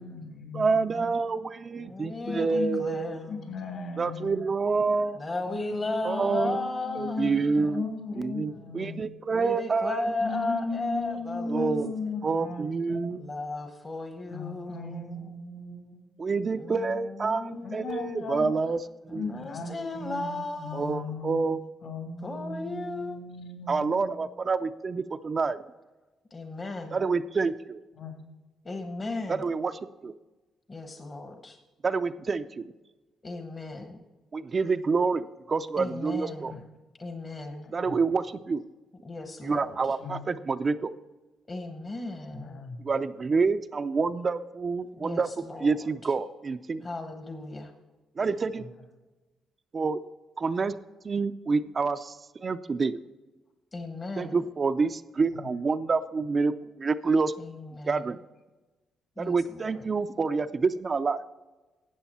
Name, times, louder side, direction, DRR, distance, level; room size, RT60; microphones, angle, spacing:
voice 1, 0.0-1.1 2.2-3.0 3.3-4.4 5.4-9.0 10.2-13.1 14.3-16.0 17.6-18.5 19.1-21.4 21.8-24.0 27.9-28.2 36.5-36.6 37.8-38.0 40.0-40.2 42.3-42.8 48.6-48.7 55.3-55.5, left 3 dB, 65° left, 2 dB, 3.1 m, -37 dB
voice 2, 0.5-3.2 4.0-5.3 6.0-6.6 7.0-7.8 8.2-10.0 11.5-11.9 12.2-13.2 16.2-18.8 19.1-19.2 20.7-21.6 23.7-25.6 26.9-27.8 29.3-30.1 31.8-32.6 34.3-36.6 37.7-38.6 39.4-40.9 42.8-46.8 48.2-48.6 49.7-50.0 50.4-50.7 51.0-53.0 54.2-57.3 57.8-58.2 59.2-61.2, right 4 dB, 35° right, 10 dB, 0.5 m, -28 dB
voice 3, 1.8-3.5 5.1-8.2 9.3-11.7 13.1-15.2 16.6-17.7 19.1-21.1 22.2-23.2 26.3-27.0 28.6-29.5 30.7-31.6 33.2-34.0 35.7-36.6 37.0-37.7 39.0-39.8 41.5-42.6 45.0-45.8 46.8-47.7 53.7-54.4 57.4-58.0 59.2-59.7, left 2 dB, 30° left, 5 dB, 1.1 m, -35 dB
13.0 x 8.6 x 4.3 m, 1.1 s
cardioid pair, 90°, 0 cm